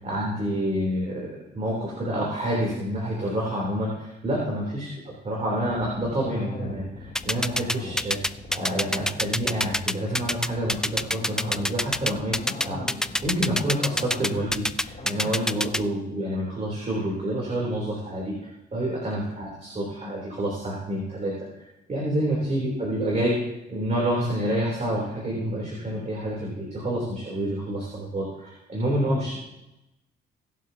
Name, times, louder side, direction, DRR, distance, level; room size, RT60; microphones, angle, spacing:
voice 1, 0.0-8.2 8.5-12.4 12.6-12.8 13.2-23.4 23.7-29.4, right 1 dB, 35° right, -4 dB, 3.5 m, -28 dB
sound 1, 5.7-15.8, left 3 dB, 45° left, 3.9 m, -39 dB
sound 2, 7.2-15.8, left 1 dB, 5° left, 0.3 m, -25 dB
20.5 x 7.4 x 2.9 m, 0.92 s
cardioid pair, 90°, 20 cm